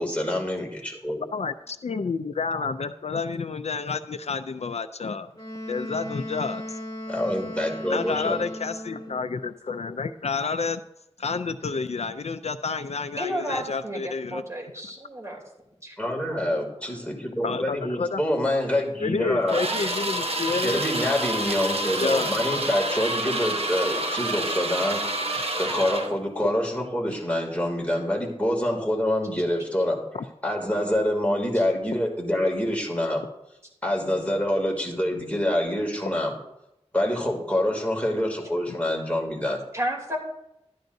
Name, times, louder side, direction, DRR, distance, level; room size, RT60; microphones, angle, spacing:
voice 1, 0.0-1.2 7.1-8.4 16.0-19.6 20.6-25.0 25.6-30.0 30.4-33.2 33.8-36.3 36.9-39.6, left 1 dB, 10° left, 0 dB, 2.5 m, -26 dB
voice 2, 1.3-5.3 5.7-6.8 7.9-10.8 11.2-14.4 17.4-18.2 19.0-20.8 22.0-22.3 30.1-30.2, left 4 dB, 65° left, 12 dB, 0.4 m, -29 dB
Wind instrument woodwind instrument, 5.3-9.3, left 1 dB, 30° left, 4.4 m, -37 dB
voice 3, 13.2-15.4 15.8-15.9 39.7-40.2, equal, 25° right, -1 dB, 2.9 m, -31 dB
sound 1, 19.5-26.2, right 1 dB, 55° right, 1.1 m, -28 dB
12.5 x 10.0 x 2.7 m, 0.86 s
wide cardioid pair, 50°, 12 cm